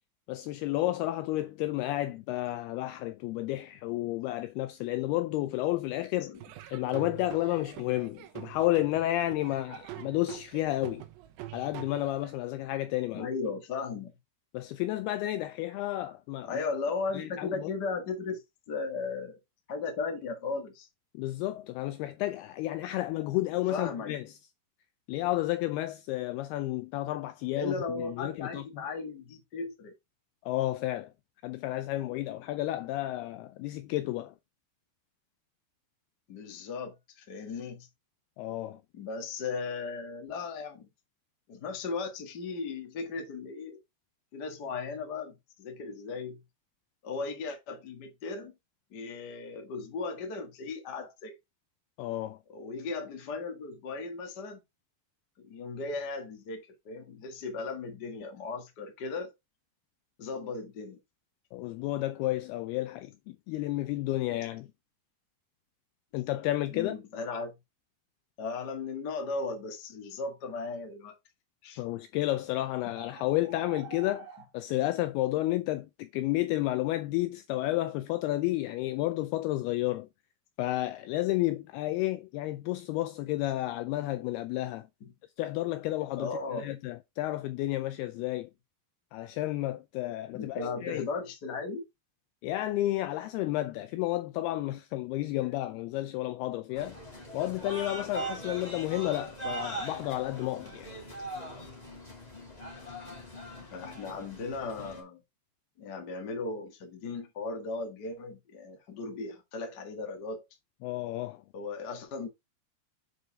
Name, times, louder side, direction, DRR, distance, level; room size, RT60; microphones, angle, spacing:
voice 1, 0.3-6.3 6.7-11.0 11.5-13.3 14.5-16.6 17.1-17.7 21.1-24.3 25.1-28.7 30.5-31.1 31.4-34.3 38.4-38.8 52.0-52.4 61.5-64.7 66.1-67.0 71.8-74.3 74.5-80.1 80.6-84.9 85.4-88.5 89.1-91.0 92.4-97.0 97.3-100.9 110.8-111.4, left 16 dB, 85° left, 2.3 m, -31 dB
Laughter / Drum, 6.4-12.3, right 14 dB, 80° right, 3.1 m, -45 dB
voice 2, 13.1-14.1 16.4-18.4 18.7-19.4 19.7-20.9 23.7-24.1 27.5-29.9 36.3-37.9 38.9-40.9 41.5-43.8 44.3-46.4 47.0-48.6 48.9-51.4 52.5-54.6 55.4-59.3 60.2-61.0 66.7-67.5 68.4-71.1 71.6-71.8 86.2-86.7 90.3-91.8 103.6-105.2 105.8-110.4 111.5-112.3, left 4 dB, 65° left, 1.0 m, -36 dB
sound 1, 72.3-72.4 72.9-74.5, right 7 dB, 45° right, 3.2 m, -47 dB
sound 2, 96.8-105.0, right 1 dB, 25° left, 0.8 m, -41 dB
7.8 x 4.9 x 3.5 m
omnidirectional pair, 5.0 m